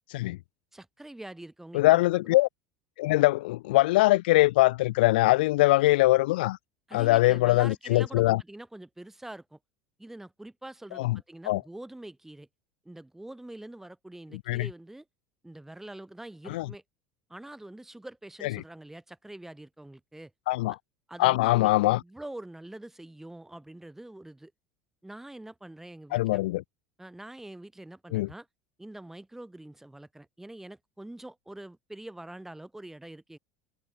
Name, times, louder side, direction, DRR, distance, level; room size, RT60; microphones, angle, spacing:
voice 1, 0.7-2.2 6.9-9.6 10.0-12.5 12.9-15.1 15.4-16.8 17.3-20.3 20.7-20.8 21.1-24.5 25.0-26.4 27.0-28.5 28.8-33.4, right 1 dB, 5° right, 5.3 m, -45 dB
voice 2, 1.7-2.5 3.0-6.6 6.9-8.4 10.9-11.2 11.5-11.6 14.5-14.7 16.5-16.7 18.4-18.6 20.5-20.8 21.2-22.0 26.1-26.6 28.1-28.3, left 19 dB, 75° left, 0.9 m, -22 dB
hypercardioid pair, 85°, 5 cm